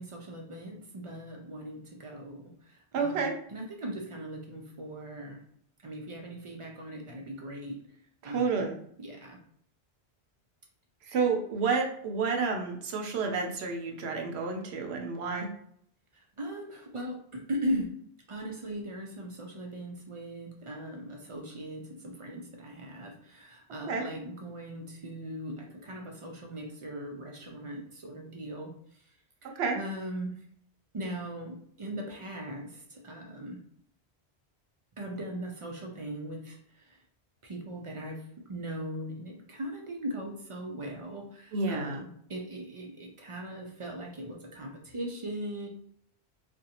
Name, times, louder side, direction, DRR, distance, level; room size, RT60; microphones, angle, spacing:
voice 1, 0.0-2.4 2.7-3.2 3.5-5.4 5.8-7.8 8.2-8.7 9.0-9.4 16.4-17.9 18.3-28.7 29.4-30.3 30.9-33.6 35.0-37.0 37.4-38.2 38.5-45.7, right 1 dB, 50° right, 0 dB, 0.4 m, -39 dB
voice 2, 2.9-3.4 8.2-8.7 11.1-15.5 23.9-24.0 29.6-29.8 41.5-42.0, right 4 dB, 75° right, 2 dB, 0.8 m, -30 dB
2.5 x 2.2 x 2.8 m, 0.66 s
omnidirectional pair, 1.1 m